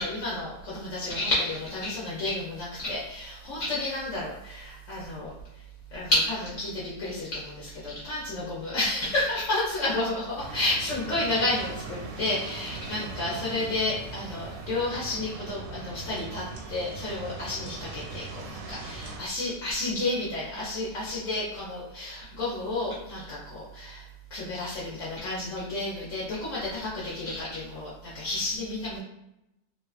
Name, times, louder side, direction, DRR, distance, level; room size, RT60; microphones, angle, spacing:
voice 1, 0.0-5.3 5.9-24.0 24.3-29.0, left 2 dB, 60° left, -7 dB, 0.8 m, -31 dB
sound 1, 10.4-19.2, right 3 dB, 90° right, 1.2 m, -40 dB
2.8 x 2.2 x 2.3 m, 0.87 s
omnidirectional pair, 1.9 m